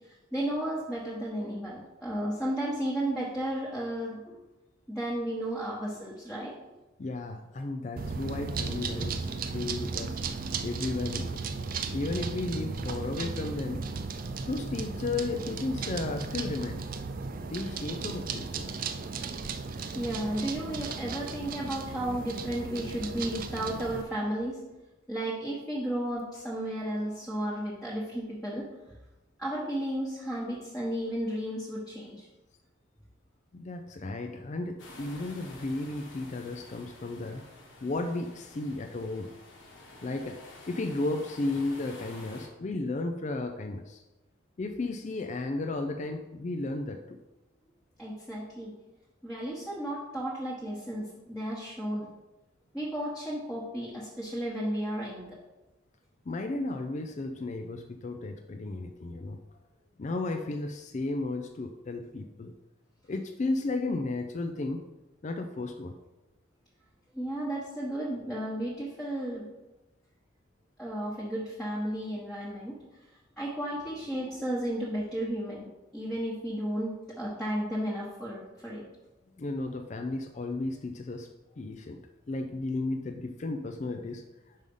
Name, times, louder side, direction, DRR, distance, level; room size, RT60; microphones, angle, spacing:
voice 1, 0.3-4.4 4.9-6.5 9.5-9.6 12.9-13.0 19.9-24.6 25.1-28.9 29.4-32.3 48.0-48.7 49.2-52.1 52.7-55.4 67.1-69.5 70.8-72.7 73.4-78.8, right 1 dB, 5° left, -7 dB, 1.1 m, -33 dB
voice 2, 7.0-10.2 10.6-11.4 11.9-13.8 14.4-16.8 17.5-18.7 33.5-37.4 37.8-39.3 40.0-44.0 44.6-47.2 56.3-59.4 60.0-62.5 63.1-64.8 65.2-65.9 79.4-81.3 81.6-82.0 82.3-84.2, left 2 dB, 35° left, 5 dB, 0.4 m, -34 dB
sound 1, 8.0-24.0, right 4 dB, 45° right, 0.4 m, -35 dB
sound 2, 34.8-42.5, left 2 dB, 70° left, 1.3 m, -50 dB
5.4 x 4.9 x 5.4 m, 1.0 s
head